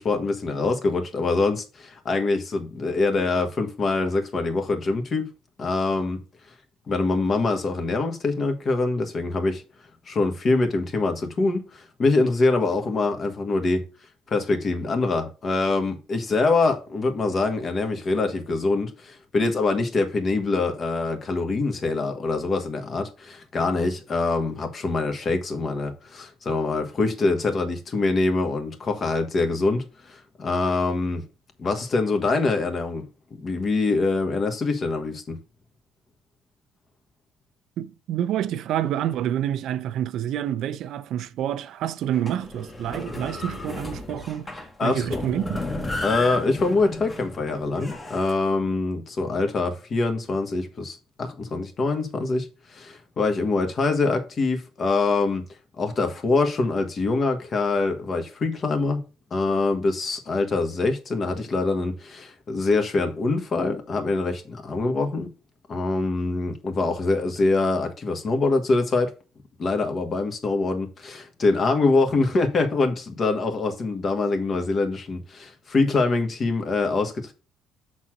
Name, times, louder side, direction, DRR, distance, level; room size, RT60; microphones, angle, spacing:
voice 1, 0.0-5.3 5.6-6.2 6.9-9.6 10.1-13.8 14.3-31.2 31.6-33.0 33.4-35.4 44.8-45.2 46.0-55.5 55.8-59.0 59.3-65.3 65.7-69.1 69.6-77.3, left 3 dB, 45° left, 1.5 m, -24 dB
voice 2, 37.8-44.5 44.8-45.9, right 11 dB, 70° right, 0.5 m, -28 dB
sound 1, 42.1-48.4, left 2 dB, 25° left, 1.4 m, -34 dB
6.3 x 4.1 x 5.9 m
cardioid pair, 90°, 0 cm